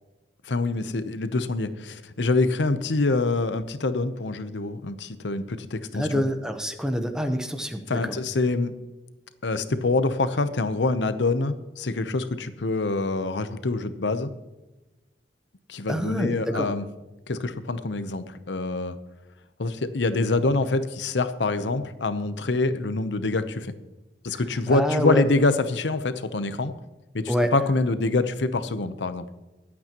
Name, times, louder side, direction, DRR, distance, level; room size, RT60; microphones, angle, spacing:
voice 1, 0.4-6.2 7.9-8.7 9.4-14.3 15.7-16.9 17.3-19.0 19.6-23.7 24.2-26.7 27.1-29.3, left 3 dB, 90° left, 11 dB, 0.8 m, -25 dB
voice 2, 5.9-8.2 15.9-16.7 24.3-24.4 24.7-25.3 27.3-27.5, equal, 5° right, 7 dB, 0.9 m, -26 dB
23.0 x 8.5 x 3.0 m, 1.1 s
head